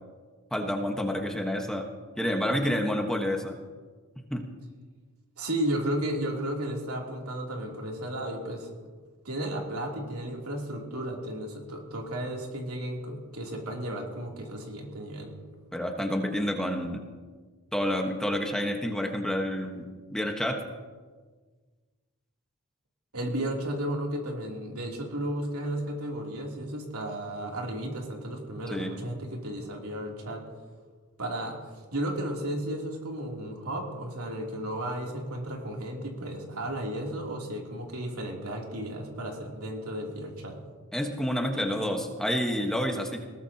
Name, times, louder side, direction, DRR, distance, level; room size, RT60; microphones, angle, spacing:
voice 1, 0.5-1.9 2.2-3.5 4.3-4.5 15.7-17.0 17.7-20.6 28.7-28.9 40.9-43.2, equal, 5° left, 2 dB, 1.3 m, -29 dB
voice 2, 5.4-8.7 9.2-15.3 23.1-30.5 31.2-31.6 31.9-40.6, right 1 dB, 85° right, -1 dB, 3.1 m, -34 dB
20.5 x 19.0 x 2.9 m, 1.4 s
head